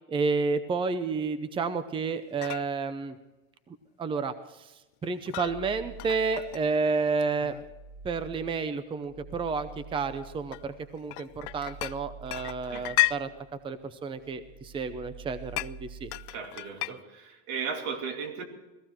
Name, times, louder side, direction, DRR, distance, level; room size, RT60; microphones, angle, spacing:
voice 1, 0.1-3.2 4.0-4.7 5.0-7.5 8.0-13.3 13.6-16.1, right 4 dB, 15° right, 12 dB, 0.7 m, -30 dB
sound 1, 2.1-2.2 2.4-2.7 5.0-5.6 6.0-6.6 7.2-7.7 8.8-9.0 9.6-9.7 10.5-12.0 12.3-13.2 15.6-15.7 16.1-16.9, left 25 dB, 70° left, 0.5 m, -32 dB
sound 2, 5.4-6.9 7.3-13.8 14.1-16.4, right 5 dB, 5° left, 1.6 m, -48 dB
voice 2, 16.3-18.5, right 5 dB, 80° right, 5 dB, 2.8 m, -36 dB
18.0 x 15.0 x 4.5 m, 1.1 s
cardioid pair, 150°, 34 cm